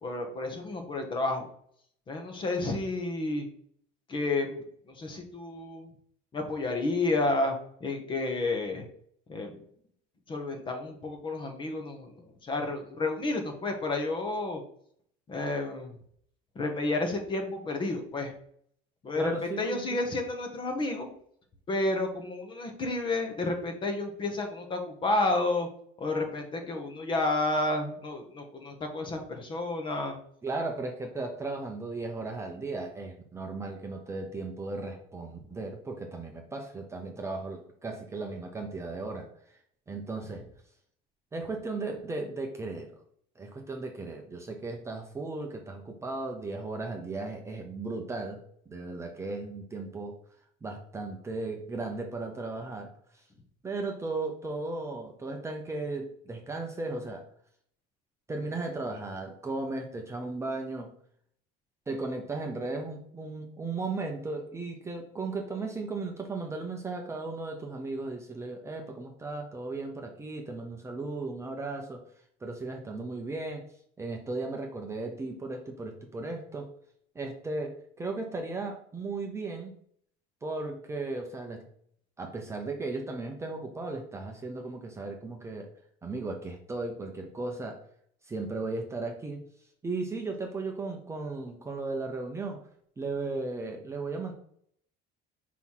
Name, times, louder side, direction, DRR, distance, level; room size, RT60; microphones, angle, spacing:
voice 1, 0.0-1.5 2.1-3.5 4.1-4.6 5.0-5.9 6.3-8.8 9.3-9.6 10.3-14.6 15.3-15.9 16.5-18.3 19.0-21.1 21.7-25.7 26.0-30.2, left 2 dB, 25° left, 4 dB, 1.2 m, -31 dB
voice 2, 19.1-19.8 30.4-39.6 39.9-40.4 41.3-42.9 43.4-48.4 48.7-50.1 50.6-53.2 53.6-57.2 58.3-60.9 61.9-72.0 72.4-73.6 74.0-76.7 77.1-79.7 80.4-81.7 82.2-85.7 86.0-87.8 88.3-89.4 89.8-92.6 93.0-94.3, right 3 dB, 15° right, 2 dB, 0.8 m, -36 dB
4.7 x 4.1 x 5.6 m, 0.63 s
cardioid pair, 150°, 19 cm